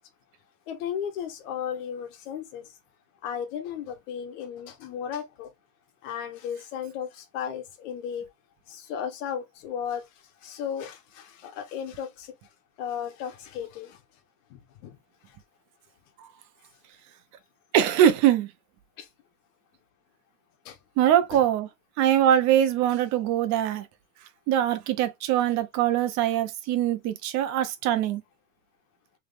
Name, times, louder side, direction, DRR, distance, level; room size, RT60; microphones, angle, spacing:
voice 1, 0.7-2.7 3.2-5.5 6.0-8.3 8.7-10.0 10.4-12.3 12.8-14.0 14.5-15.0 19.0-19.1 20.6-20.8 21.3-21.4, left 8 dB, 70° left, 1.4 m, -35 dB
voice 2, 17.7-18.5 21.0-21.7 22.0-23.9 24.5-28.2, right 11 dB, 45° right, 0.8 m, -22 dB
3.5 x 3.4 x 3.3 m
supercardioid pair, 155°, 39 cm